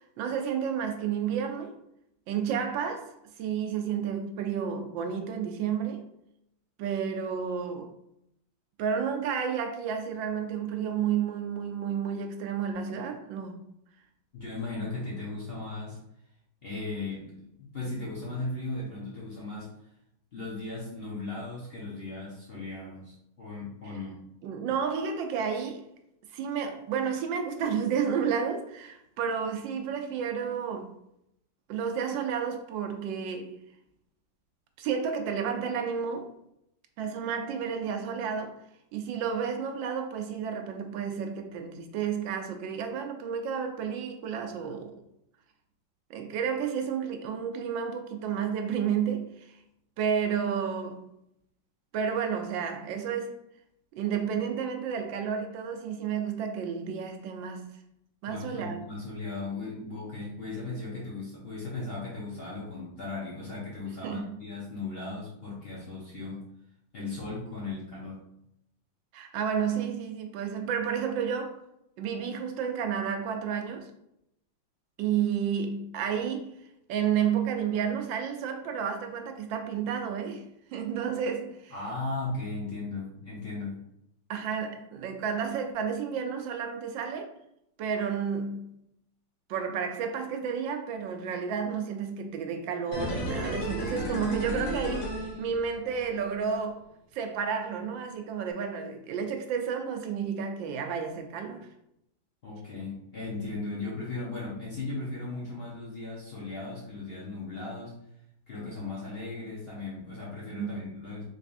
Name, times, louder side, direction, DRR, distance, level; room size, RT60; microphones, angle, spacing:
voice 1, 0.0-1.7 2.3-3.1 3.4-6.0 6.8-7.9 8.8-13.6 24.4-25.8 26.3-30.9 31.7-33.6 34.8-36.3 37.0-38.6 38.9-45.0 46.1-49.6 50.0-51.0 51.9-53.4 54.0-57.7 58.2-58.8 64.0-64.3 69.1-71.6 72.0-73.9 75.0-76.5 76.9-80.4 80.7-81.7 84.3-87.3 87.8-88.6 89.5-96.8 97.1-101.7 110.5-110.9, right 7 dB, 90° right, 1.3 m, -31 dB
voice 2, 14.3-16.0 16.6-19.7 20.3-24.2 58.3-66.4 66.9-68.2 81.7-83.8 102.4-107.9 108.5-111.2, left 3 dB, 45° left, 0.8 m, -37 dB
sound 1, 92.9-96.0 96.3-96.4, equal, 80° left, 1.7 m, -33 dB
4.1 x 3.3 x 2.5 m
omnidirectional pair, 2.0 m